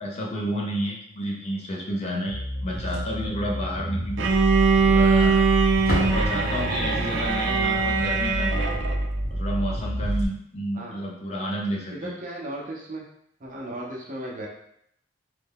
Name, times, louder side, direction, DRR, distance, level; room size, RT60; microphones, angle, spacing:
voice 1, 0.0-4.2 4.9-5.4 6.0-8.5 9.3-12.1, equal, 35° left, -1 dB, 0.5 m, -30 dB
sound 1, 2.3-10.3, equal, 70° left, 1.3 m, -28 dB
Slam, 2.7-3.3 3.6-3.7 4.2-4.3 5.1-5.4 5.7-7.0 9.7-9.8 10.0-10.2 11.7-11.9, left 1 dB, 55° left, 1.1 m, -32 dB
Bowed string instrument, 4.2-9.0, right 5 dB, 75° right, 0.4 m, -22 dB
voice 2, 11.9-13.1 13.4-14.5, right 1 dB, 45° right, -2 dB, 0.7 m, -35 dB
3.2 x 2.2 x 3.5 m, 0.71 s
head